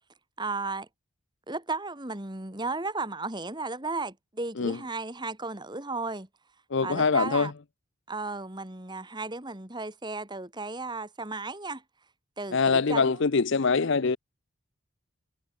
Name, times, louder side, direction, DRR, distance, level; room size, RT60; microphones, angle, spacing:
voice 1, 0.4-0.9 1.5-6.3 6.8-7.5 8.1-11.8 12.4-13.2, right 3 dB, 20° right, 2.1 m, -34 dB
voice 2, 6.7-7.5 12.5-14.2, left 4 dB, 55° left, 0.6 m, -24 dB
head